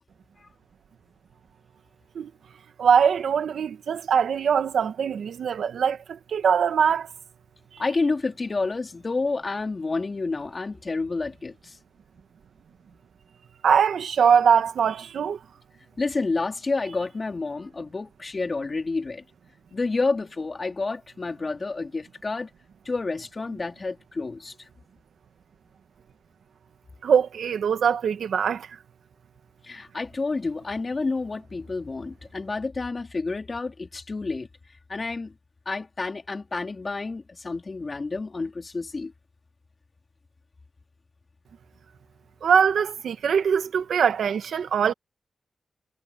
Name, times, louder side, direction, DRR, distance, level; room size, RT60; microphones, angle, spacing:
voice 1, 2.8-7.1 13.6-15.4 27.0-28.7 42.4-44.9, right 7 dB, 80° right, 1.5 m, -22 dB
voice 2, 7.8-11.8 16.0-19.2 19.7-22.5 22.8-24.7 29.6-34.5 34.9-35.3 35.7-39.1, left 3 dB, 35° left, 4.0 m, -29 dB
cardioid pair, 90°, 0 cm